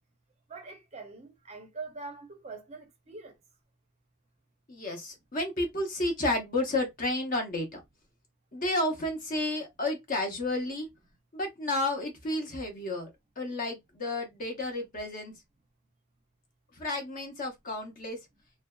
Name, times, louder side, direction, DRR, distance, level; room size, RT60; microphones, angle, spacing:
voice 1, 0.5-3.3, right 4 dB, 30° right, 0.5 m, -43 dB
voice 2, 4.7-7.8 8.5-10.9 11.3-13.1 13.4-15.3 16.7-18.2, left 2 dB, 40° left, 0.7 m, -31 dB
2.6 x 2.2 x 2.2 m
head